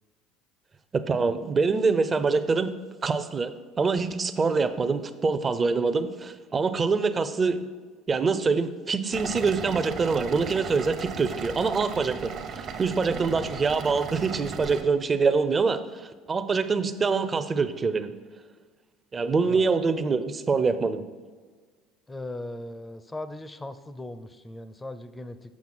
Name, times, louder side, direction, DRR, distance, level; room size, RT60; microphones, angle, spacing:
voice 1, 0.9-2.7 3.0-7.6 8.1-18.1 19.1-21.0, right 4 dB, 30° right, 11 dB, 0.6 m, -25 dB
sound 1, 9.1-14.8, right 6 dB, 55° right, 1.0 m, -37 dB
voice 2, 22.1-25.6, left 1 dB, 15° left, 12 dB, 0.6 m, -39 dB
7.3 x 5.9 x 4.3 m, 1.5 s
hypercardioid pair, 75°, 0 cm